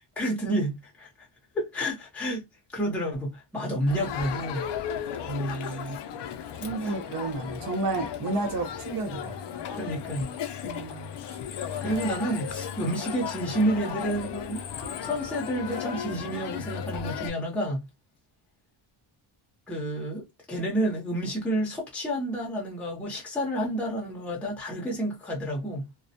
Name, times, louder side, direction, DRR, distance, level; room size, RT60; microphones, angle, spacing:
voice 1, 0.2-1.1 1.5-2.4 2.7-4.7 5.4-5.9 6.8-6.9 9.7-10.3 11.8-17.8 19.7-25.9, right 1 dB, 5° left, 0.6 m, -30 dB
Crowd, 3.9-17.3, left 8 dB, 60° left, 0.5 m, -35 dB
voice 2, 5.3-6.0 6.6-9.4 10.6-11.1 12.0-12.1, right 2 dB, 40° right, 0.8 m, -31 dB
2.2 x 2.0 x 2.7 m
cardioid pair, 160°, 50 cm